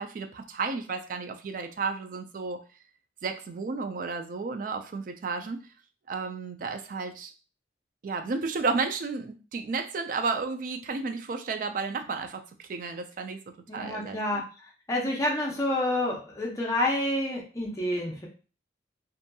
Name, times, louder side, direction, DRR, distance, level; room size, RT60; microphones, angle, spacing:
voice 1, 0.0-2.6 3.2-5.6 6.1-7.3 8.0-12.4 12.7-13.4 13.7-14.2, right 4 dB, 45° right, 7 dB, 0.3 m, -32 dB
voice 2, 13.7-18.3, left 1 dB, 20° left, -2 dB, 0.6 m, -29 dB
2.7 x 2.6 x 2.2 m, 0.35 s
head